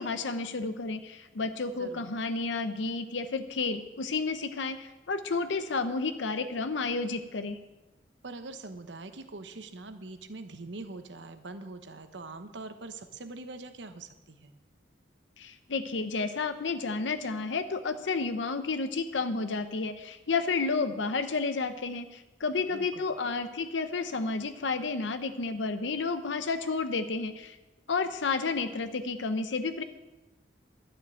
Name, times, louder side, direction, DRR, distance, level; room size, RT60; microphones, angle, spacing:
voice 1, 0.0-7.6 15.4-27.6 27.9-29.8, left 4 dB, 85° left, 9 dB, 0.7 m, -31 dB
voice 2, 8.2-14.5 22.7-23.1, right 3 dB, 80° right, 9 dB, 1.0 m, -43 dB
12.0 x 6.7 x 8.9 m, 1.1 s
head